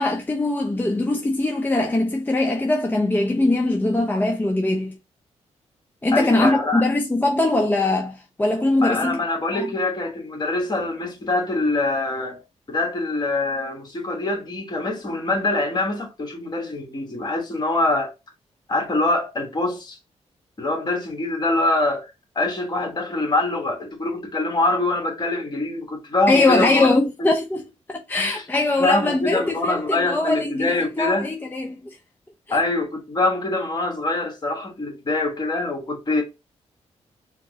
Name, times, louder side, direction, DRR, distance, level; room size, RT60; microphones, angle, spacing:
voice 1, 0.0-4.9 6.0-9.2 9.5-9.7 26.3-31.8 32.5-32.6, left 2 dB, 15° left, 0.6 m, -21 dB
voice 2, 6.1-6.8 8.8-12.4 12.7-18.1 18.7-20.0 20.6-22.1 22.3-26.9 27.2-27.3 28.1-28.4 28.8-31.3 32.5-36.2, left 2 dB, 35° left, 1.3 m, -24 dB
4.3 x 2.0 x 2.7 m
cardioid pair, 75°, 12 cm